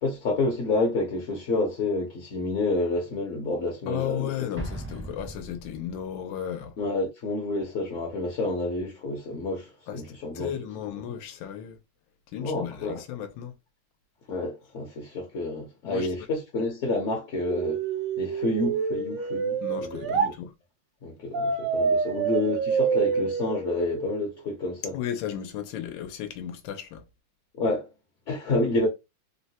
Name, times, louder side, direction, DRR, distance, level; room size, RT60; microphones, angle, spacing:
voice 1, 0.0-4.3 6.8-10.5 12.4-13.0 14.3-17.8 18.2-20.0 21.0-24.9 27.5-27.9 28.3-28.9, left 2 dB, 55° left, 0.9 m, -29 dB
voice 2, 3.9-6.8 9.9-11.8 12.3-13.5 15.8-16.1 19.6-20.5 24.9-27.1, left 10 dB, 90° left, 1.4 m, -34 dB
Explosion, 4.6-6.2, right 1 dB, 15° right, 0.6 m, -38 dB
sound 1, 17.5-20.3 21.3-24.3, right 6 dB, 60° right, 0.9 m, -27 dB
3.7 x 2.1 x 2.7 m
omnidirectional pair, 2.0 m